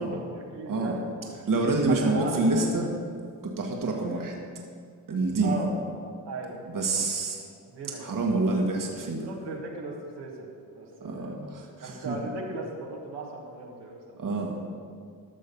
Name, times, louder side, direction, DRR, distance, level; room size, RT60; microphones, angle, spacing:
voice 1, 0.0-1.3 1.9-2.7 3.8-4.2 5.1-5.7 6.2-6.6 6.9-7.1 7.7-8.0 9.3-10.5 10.7-11.4 11.8-14.3 14.6-14.7, right 3 dB, 80° right, -2 dB, 1.8 m, -37 dB
voice 2, 1.5-2.8 3.4-4.3 5.1-5.6 6.7-7.4 8.0-9.3 11.0-12.2 14.2-14.6, right 2 dB, 50° right, 0 dB, 1.7 m, -27 dB
13.0 x 6.5 x 5.4 m, 2.1 s
supercardioid pair, 50°, 40 cm